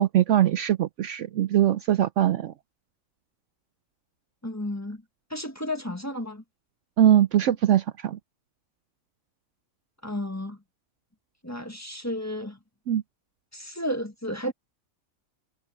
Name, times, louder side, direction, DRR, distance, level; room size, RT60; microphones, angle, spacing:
voice 1, 0.0-2.5 7.0-8.2 12.9-13.0, right 11 dB, 65° right, 0.8 m, -21 dB
voice 2, 4.4-5.0 5.3-6.4 10.0-10.6 11.4-12.6 13.5-14.5, left 1 dB, 10° left, 1.4 m, -32 dB
omnidirectional pair, 1.5 m